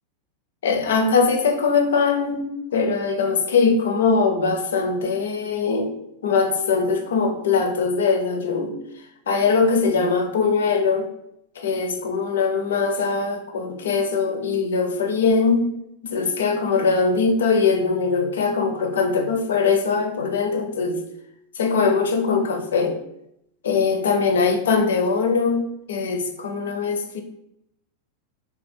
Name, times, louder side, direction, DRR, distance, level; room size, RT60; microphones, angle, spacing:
voice 1, 0.6-5.9 6.2-8.8 9.3-11.1 11.6-15.7 16.0-21.0 21.6-23.0 23.6-27.2, left 4 dB, 65° left, 6 dB, 0.5 m, -21 dB
3.4 x 3.1 x 3.3 m, 0.80 s
figure-of-eight pair, 90°, 0 cm